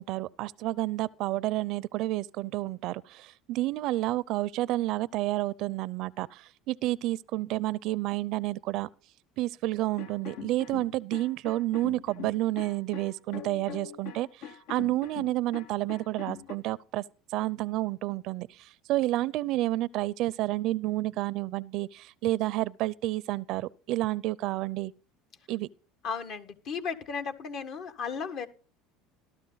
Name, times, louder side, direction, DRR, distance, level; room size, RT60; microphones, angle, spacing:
voice 1, 0.0-8.9 9.4-17.0 17.3-24.9 25.5-25.7, right 17 dB, 60° right, 0.5 m, -30 dB
sound 1, 10.0-16.5, left 8 dB, 70° left, 1.1 m, -43 dB
voice 2, 26.0-28.5, left 6 dB, 55° left, 1.6 m, -35 dB
14.0 x 12.0 x 4.0 m
supercardioid pair, 105°, 0 cm